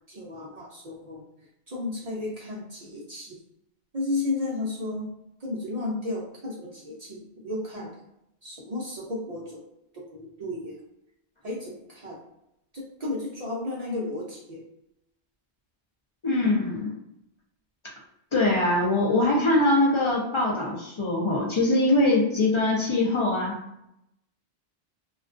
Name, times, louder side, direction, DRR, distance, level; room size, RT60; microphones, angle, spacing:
voice 1, 0.1-1.3 1.7-3.4 3.9-5.1 5.4-7.9 8.4-9.6 9.9-10.8 11.4-12.2 12.7-14.7, left 2 dB, 50° right, -5 dB, 0.5 m, -33 dB
voice 2, 16.2-16.9 18.3-23.6, left 2 dB, 45° left, -3 dB, 0.4 m, -22 dB
2.3 x 2.2 x 2.4 m, 0.81 s
omnidirectional pair, 1.1 m